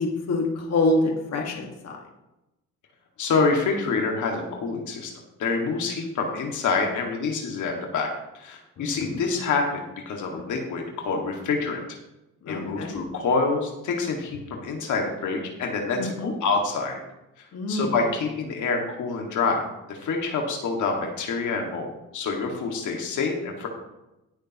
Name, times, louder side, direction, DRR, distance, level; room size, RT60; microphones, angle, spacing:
voice 1, 0.0-2.0 8.8-9.2 12.4-12.9 16.0-16.3 17.5-17.9, left 2 dB, 55° left, 1 dB, 1.8 m, -26 dB
voice 2, 3.2-5.1 5.4-11.8 12.4-17.0 17.4-23.7, left 4 dB, 75° left, 1 dB, 2.0 m, -27 dB
18.0 x 6.7 x 3.0 m, 0.94 s
cardioid pair, 90°, 30 cm